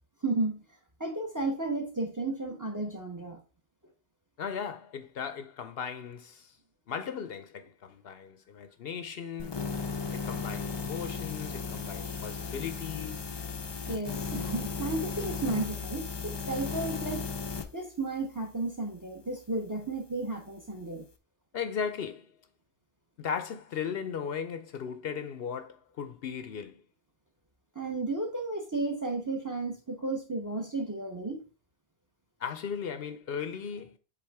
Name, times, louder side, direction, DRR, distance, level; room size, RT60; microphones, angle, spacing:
voice 1, 0.2-0.6 1.0-3.4 13.9-17.2 17.7-21.0 27.7-31.4, right 2 dB, 20° right, 0.9 m, -33 dB
voice 2, 4.4-6.6 6.9-9.6 10.1-13.3 21.5-22.4 23.2-26.8 32.4-34.0, left 7 dB, 65° left, 0.8 m, -37 dB
sound 1, 9.4-17.7, left 5 dB, 35° left, 0.4 m, -35 dB
7.8 x 3.6 x 3.4 m
omnidirectional pair, 1.1 m